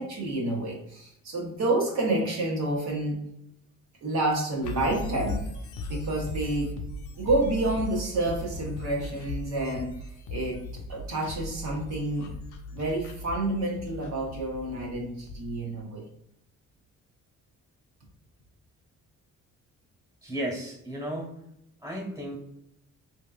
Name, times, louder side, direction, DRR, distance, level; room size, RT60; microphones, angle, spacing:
voice 1, 0.0-3.2 4.0-5.4 5.9-6.7 7.2-12.3 12.7-16.0, right 2 dB, 65° right, -2 dB, 0.9 m, -29 dB
sound 1, 4.6-15.5, left 2 dB, 75° left, 0.6 m, -37 dB
voice 2, 20.2-21.3 21.8-22.4, right 1 dB, 10° right, -1 dB, 1.3 m, -34 dB
3.5 x 2.7 x 2.3 m, 0.80 s
cardioid pair, 90°, 30 cm